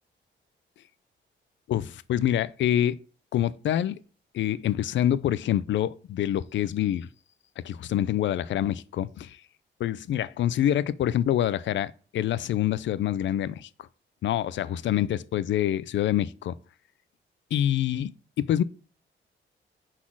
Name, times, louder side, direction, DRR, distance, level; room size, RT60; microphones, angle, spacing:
voice 1, 1.7-3.0 3.3-4.0 4.3-7.1 7.6-9.4 9.8-13.7 14.2-16.5 17.5-18.6, left 11 dB, 65° left, 0.4 m, -26 dB
5.9 x 4.2 x 6.0 m
wide cardioid pair, 175°, 21 cm